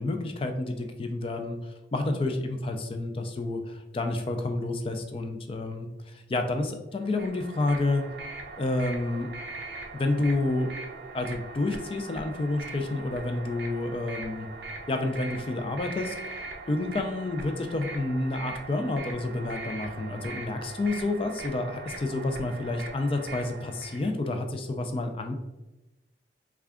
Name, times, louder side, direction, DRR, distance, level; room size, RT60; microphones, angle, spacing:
voice 1, 0.0-8.0 8.6-9.3 9.9-10.7 11.1-14.5 14.9-16.1 16.7-25.3, left 2 dB, 30° left, 5 dB, 0.4 m, -29 dB
sound 1, 7.0-24.1, right 3 dB, 60° right, 0.6 m, -41 dB
3.4 x 2.4 x 3.5 m, 1.0 s
head